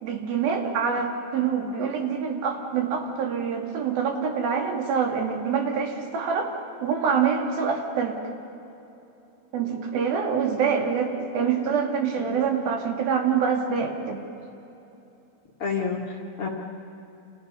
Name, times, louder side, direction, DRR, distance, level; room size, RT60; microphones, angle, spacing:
voice 1, 0.0-6.5 6.8-8.2 9.5-14.2, right 6 dB, 80° right, 2 dB, 4.1 m, -25 dB
voice 2, 15.6-16.5, left 5 dB, 45° left, 0 dB, 2.3 m, -29 dB
29.0 x 28.0 x 5.5 m, 2.9 s
omnidirectional pair, 4.2 m